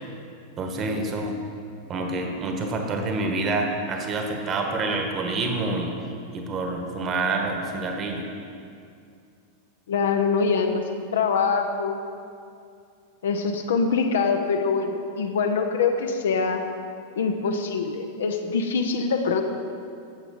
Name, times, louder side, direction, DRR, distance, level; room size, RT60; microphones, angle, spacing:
voice 1, 0.6-1.3 1.9-5.9 6.3-8.3, right 3 dB, 30° right, 3 dB, 1.3 m, -27 dB
voice 2, 9.9-12.0 13.2-16.7 17.2-19.4, left 5 dB, 60° left, 5 dB, 0.7 m, -24 dB
12.0 x 7.9 x 3.7 m, 2.4 s
figure-of-eight pair, 90°, 0 cm